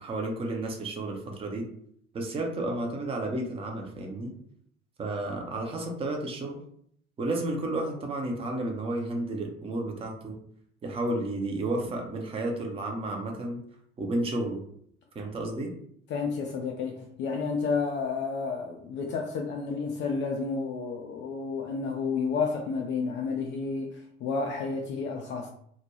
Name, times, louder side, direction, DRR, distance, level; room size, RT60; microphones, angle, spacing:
voice 1, 0.0-1.6 2.1-4.3 5.0-6.6 7.2-10.4 10.8-13.6 14.0-14.6 15.1-15.7, right 2 dB, 15° right, 0.6 m, -32 dB
voice 2, 16.1-25.5, left 4 dB, 35° left, 0.4 m, -31 dB
2.3 x 2.1 x 3.0 m
figure-of-eight pair, 65°, 36 cm